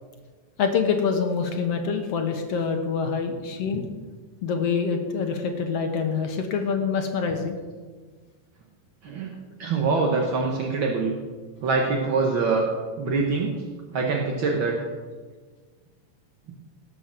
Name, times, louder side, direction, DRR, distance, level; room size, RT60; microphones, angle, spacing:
voice 1, 0.6-3.8 4.4-7.6, left 5 dB, 60° left, 5 dB, 1.8 m, -25 dB
voice 2, 9.6-11.1 11.6-12.6 13.0-13.5 13.9-14.7, right 4 dB, 55° right, 0 dB, 1.3 m, -24 dB
17.5 x 6.8 x 7.4 m, 1.4 s
omnidirectional pair, 4.0 m